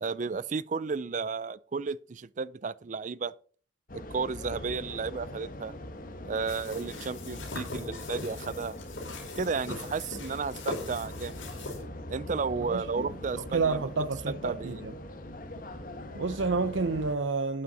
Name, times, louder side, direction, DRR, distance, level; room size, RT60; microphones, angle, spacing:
voice 1, 0.0-3.3 3.9-5.7 6.3-8.8 9.4-11.5 12.1-13.9 14.3-14.8, right 5 dB, 40° right, 0.4 m, -33 dB
sound 1, 3.9-17.1, left 1 dB, 45° left, 1.3 m, -42 dB
sound 2, 6.5-11.8, left 2 dB, 80° left, 5.0 m, -41 dB
voice 2, 12.6-13.1 13.3-14.9 16.1-17.6, right 4 dB, 75° right, 0.7 m, -30 dB
12.0 x 8.7 x 4.1 m
head